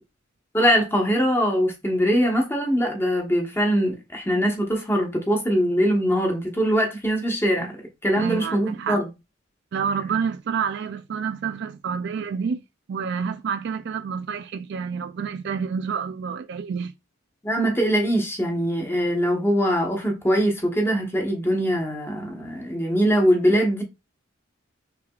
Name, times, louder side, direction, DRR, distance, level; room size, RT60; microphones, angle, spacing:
voice 1, 0.5-7.7 8.0-9.1 17.4-23.8, equal, 10° left, 1.2 m, -22 dB
voice 2, 8.1-9.0 9.7-12.6 12.9-16.9 21.7-21.8, right 6 dB, 60° right, 0.4 m, -28 dB
5.9 x 3.1 x 2.4 m
head